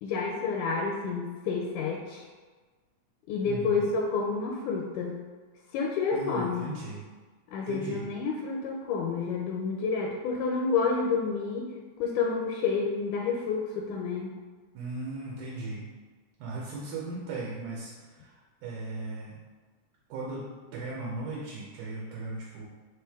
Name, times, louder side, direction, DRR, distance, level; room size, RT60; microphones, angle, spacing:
voice 1, 0.0-2.3 3.3-5.2 5.7-6.7 7.5-11.7 12.0-14.3, left 4 dB, 80° left, 0 dB, 1.9 m, -29 dB
voice 2, 3.4-3.9 6.1-7.0 7.7-8.0 14.7-15.8 16.4-17.9 18.2-18.3 18.6-19.4 20.1-20.5 20.7-22.6, right 2 dB, 85° right, -4 dB, 2.2 m, -37 dB
4.8 x 3.2 x 3.4 m, 1.4 s
omnidirectional pair, 3.5 m